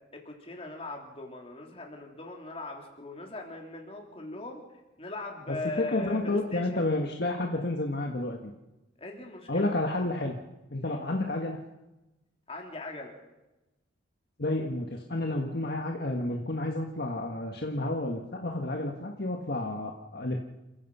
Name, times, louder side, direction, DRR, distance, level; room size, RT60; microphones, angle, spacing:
voice 1, 0.1-4.6 5.0-6.9 9.0-9.8 10.8-11.0 12.5-13.1, left 2 dB, 30° left, 1 dB, 3.5 m, -40 dB
voice 2, 5.5-8.5 9.5-10.4 10.7-11.6 14.4-20.4, left 2 dB, 55° left, 2 dB, 1.6 m, -30 dB
29.5 x 15.5 x 5.7 m, 1.0 s
head